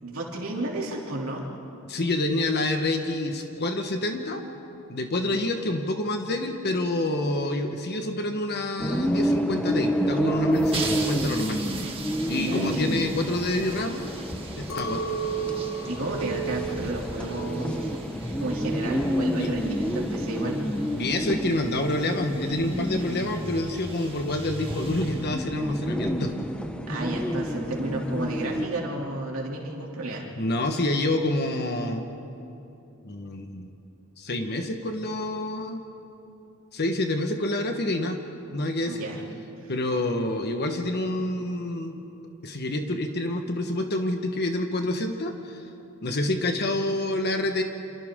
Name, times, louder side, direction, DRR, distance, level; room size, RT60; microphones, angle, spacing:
voice 1, 0.0-1.5 12.2-12.9 15.8-18.0 18.4-20.6 26.9-30.3 38.8-39.2 39.6-39.7, right 1 dB, 75° right, -2 dB, 3.0 m, -32 dB
voice 2, 1.9-4.4 4.9-11.6 12.3-14.1 14.6-15.0 19.4-19.5 20.9-26.3 30.4-32.1 33.0-33.7 34.2-35.8 36.7-38.2 38.5-39.1 39.7-42.0 42.4-45.6 46.0-47.6, left 1 dB, 50° left, 4 dB, 1.3 m, -27 dB
sound 1, 8.8-28.7, equal, 5° left, 1.0 m, -29 dB
sound 2, 10.5-25.9, right 4 dB, 25° right, 2.0 m, -41 dB
Chink clink, 14.7-19.1 19.4-20.0, right 6 dB, 75° left, 1.6 m, -34 dB
28.5 x 27.0 x 3.7 m, 2.8 s
head